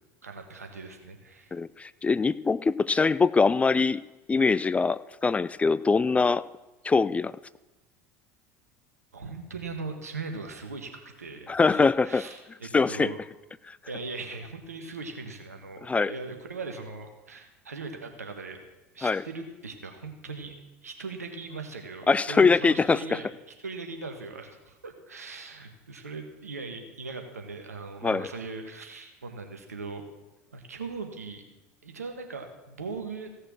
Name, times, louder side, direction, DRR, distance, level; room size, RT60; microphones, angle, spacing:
voice 1, 0.2-1.5 9.1-13.2 13.9-18.6 18.9-20.5 20.8-30.0 30.5-31.4 31.8-33.3, right 4 dB, 90° right, 5 dB, 1.5 m, -39 dB
voice 2, 1.5-4.0 4.3-6.4 6.8-7.3 11.5-12.2 12.7-13.1 15.8-16.1 19.0-19.2 22.1-23.2 28.0-28.2, left 4 dB, 15° left, 19 dB, 0.3 m, -23 dB
16.0 x 6.5 x 6.3 m, 1.1 s
hypercardioid pair, 80°, 8 cm